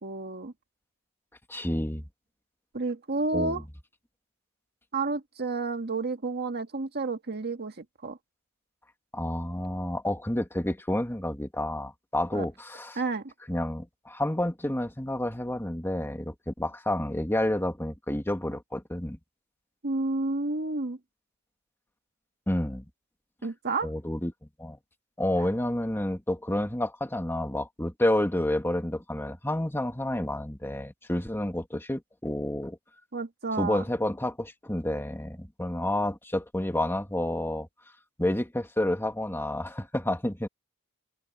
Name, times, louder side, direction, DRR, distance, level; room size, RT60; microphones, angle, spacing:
voice 1, 0.0-0.5 2.7-3.6 4.9-8.2 12.3-12.5 12.9-13.3 19.8-21.0 23.4-23.9 33.1-33.8, right 3 dB, 50° right, 1.7 m, -30 dB
voice 2, 1.5-2.0 3.3-3.6 9.1-13.0 13.5-19.2 22.5-22.9 23.8-24.8 25.2-32.8 33.6-37.7 38.2-40.5, left 1 dB, 10° left, 2.3 m, -29 dB
open air
head